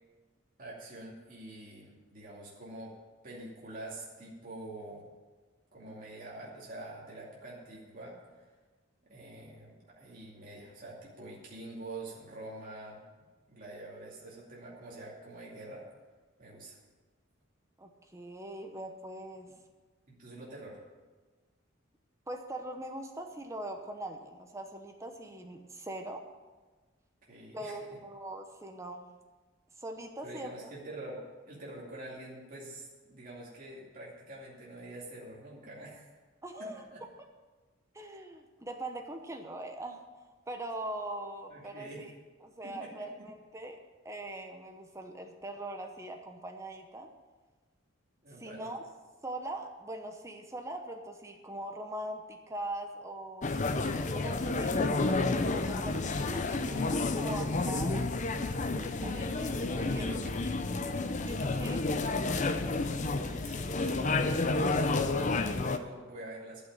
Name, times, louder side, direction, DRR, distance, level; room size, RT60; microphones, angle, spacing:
voice 1, 0.6-2.9 3.2-5.1 5.7-8.5 9.1-13.0 13.5-15.9 16.4-16.8 20.1-20.8 27.3-27.8 30.2-36.1 36.6-37.0 41.5-42.1 42.6-43.0 48.2-48.7 59.8-60.2 62.9-66.6, right 2 dB, 45° right, -5 dB, 2.5 m, -46 dB
voice 2, 17.8-19.5 22.3-26.2 27.5-29.0 29.8-30.7 36.4-36.8 37.9-40.0 40.5-42.1 42.4-43.8 44.0-47.1 48.4-48.8 49.2-53.7 54.1-58.0 58.7-60.1 61.2-61.8 62.3-62.5, right 1 dB, 15° right, 4 dB, 0.9 m, -41 dB
sound 1, 53.4-65.8, left 3 dB, 35° left, 0.6 m, -30 dB
11.5 x 6.4 x 8.8 m, 1.3 s
head